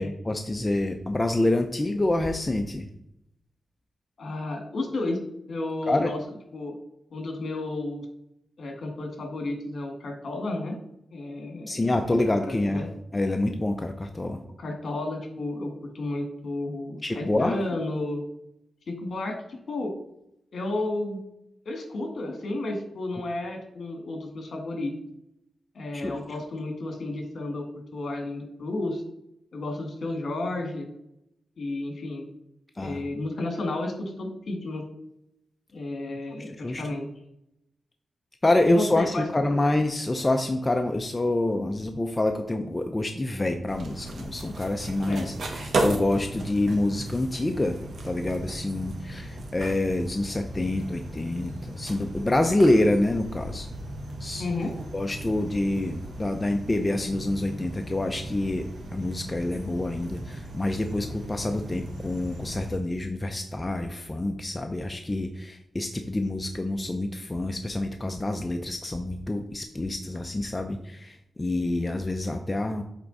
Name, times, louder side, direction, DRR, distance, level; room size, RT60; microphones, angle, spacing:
voice 1, 0.0-2.9 5.9-6.1 11.7-12.9 13.1-14.4 17.0-17.6 26.0-26.1 32.8-33.0 36.4-36.8 38.4-47.8 48.0-53.7 54.2-54.5 54.9-58.7 58.9-72.8, left 1 dB, 20° left, 5 dB, 0.5 m, -27 dB
voice 2, 4.2-5.2 5.5-6.2 6.5-6.8 7.1-8.1 8.6-10.8 11.1-12.2 12.4-12.9 14.6-18.2 18.9-19.9 20.5-21.2 21.7-24.9 25.7-29.0 29.5-30.9 31.6-32.3 32.8-34.8 35.7-37.1 38.6-39.2 45.1-45.2 54.4-54.8, left 2 dB, 60° left, 3 dB, 1.8 m, -32 dB
sound 1, 43.7-62.8, right 2 dB, 65° right, 1.4 m, -36 dB
8.0 x 3.5 x 4.0 m, 0.80 s
cardioid pair, 90°, 0 cm